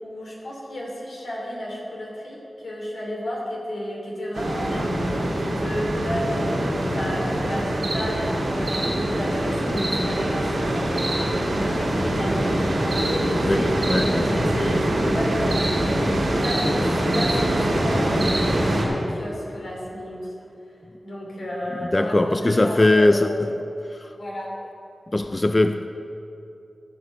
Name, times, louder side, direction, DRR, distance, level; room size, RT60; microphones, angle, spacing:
voice 1, 0.0-20.3 21.0-23.3 24.1-24.5, equal, 85° left, -4 dB, 2.8 m, -32 dB
sound 1, 4.3-18.8, right 1 dB, 90° right, 2.7 m, -23 dB
voice 2, 13.4-14.3 21.9-23.5 24.0-24.1 25.1-25.9, left 2 dB, 30° left, 9 dB, 0.4 m, -20 dB
16.0 x 6.1 x 5.8 m, 2.8 s
cardioid pair, 50°, 0 cm